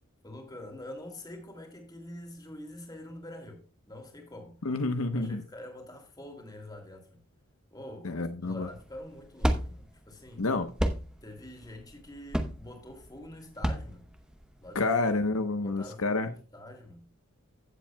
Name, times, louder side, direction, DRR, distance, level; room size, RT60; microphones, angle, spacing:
voice 1, 0.2-4.6 5.1-7.2 7.7-10.5 11.2-14.1 14.6-14.9 15.6-17.1, left 1 dB, 15° left, 2.4 m, -46 dB
voice 2, 4.6-5.4 8.0-8.7 10.4-10.7 14.7-16.3, left 3 dB, 75° left, 0.9 m, -29 dB
sound 1, 8.6-14.8, equal, 5° right, 0.8 m, -32 dB
16.0 x 7.5 x 2.2 m
head